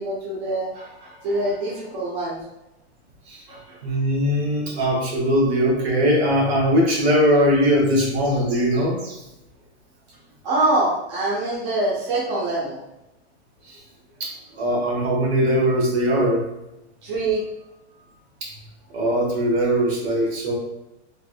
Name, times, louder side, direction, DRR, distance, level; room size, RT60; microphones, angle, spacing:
voice 1, 0.0-2.4 3.5-3.8 10.4-12.8 17.0-17.4, right 2 dB, 40° right, -6 dB, 0.7 m, -24 dB
voice 2, 3.8-9.2 13.7-13.8 14.2-14.3 14.6-16.4 18.4-18.5 18.9-20.6, equal, 60° right, -1 dB, 1.2 m, -20 dB
3.3 x 3.2 x 2.2 m, 0.93 s
supercardioid pair, 170°, 36 cm